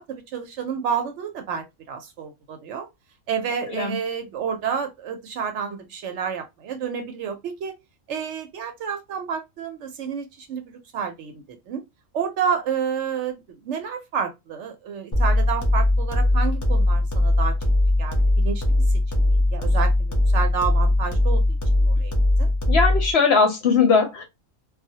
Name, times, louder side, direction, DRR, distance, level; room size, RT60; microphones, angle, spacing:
voice 1, 0.0-2.9 3.3-7.7 8.1-11.8 12.1-17.5 18.0-18.6 19.1-19.9 20.3-22.1 22.4-22.5, right 7 dB, 70° right, 0.8 m, -30 dB
sound 1, 15.1-23.1, left 1 dB, 25° left, 0.4 m, -20 dB
voice 2, 22.7-24.2, left 5 dB, 60° left, 0.8 m, -19 dB
2.2 x 2.0 x 2.6 m
omnidirectional pair, 1.4 m